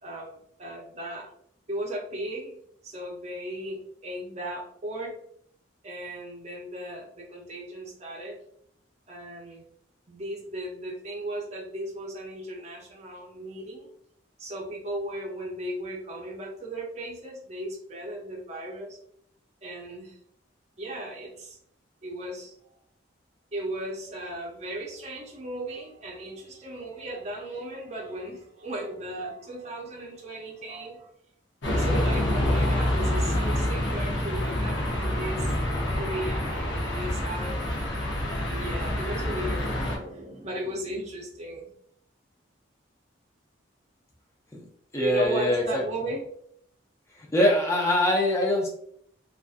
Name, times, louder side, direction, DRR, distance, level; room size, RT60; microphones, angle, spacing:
voice 1, 0.0-1.3 1.7-2.6 2.8-5.1 5.8-8.4 9.1-9.6 10.1-13.9 14.4-19.0 19.6-20.2 20.8-21.6 22.0-22.5 23.5-31.1 31.6-35.5 35.9-37.9 38.5-41.7 45.0-46.2, right 1 dB, 35° right, -1 dB, 0.5 m, -36 dB
sound 1, 31.6-40.0, left 1 dB, 65° left, 0.7 m, -27 dB
voice 2, 44.9-45.8 47.3-48.7, left 1 dB, 15° left, -2 dB, 0.4 m, -23 dB
2.4 x 2.3 x 2.4 m, 0.66 s
head